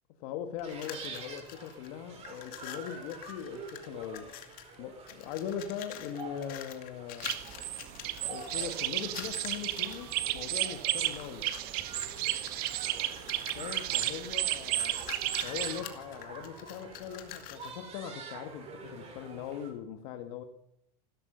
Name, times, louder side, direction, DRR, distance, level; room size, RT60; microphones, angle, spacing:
voice 1, 0.2-4.3 4.8-7.3 8.2-11.5 13.6-15.0 15.4-20.4, left 9 dB, 70° left, 6 dB, 1.4 m, -40 dB
sound 1, 0.6-1.9 2.2-4.8 5.1-10.2 10.8-11.6 11.9-17.8, left 12 dB, 50° left, 2.3 m, -47 dB
sound 2, 0.6-19.7, right 4 dB, 35° right, 5.8 m, -48 dB
sound 3, 7.2-15.8, right 14 dB, 55° right, 1.5 m, -33 dB
16.5 x 13.0 x 6.7 m, 0.77 s
supercardioid pair, 145°, 19 cm